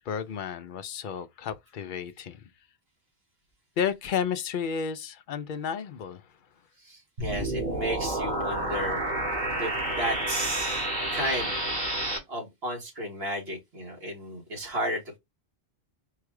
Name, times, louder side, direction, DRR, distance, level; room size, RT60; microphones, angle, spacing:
voice 1, 0.1-2.4 3.8-6.3, left 7 dB, 60° left, 0.6 m, -32 dB
voice 2, 6.8-9.0 9.6-11.6 12.3-15.2, right 1 dB, 70° right, 2.0 m, -33 dB
sound 1, 7.2-12.2, right 1 dB, 45° right, 1.8 m, -30 dB
4.8 x 2.3 x 4.7 m
omnidirectional pair, 1.1 m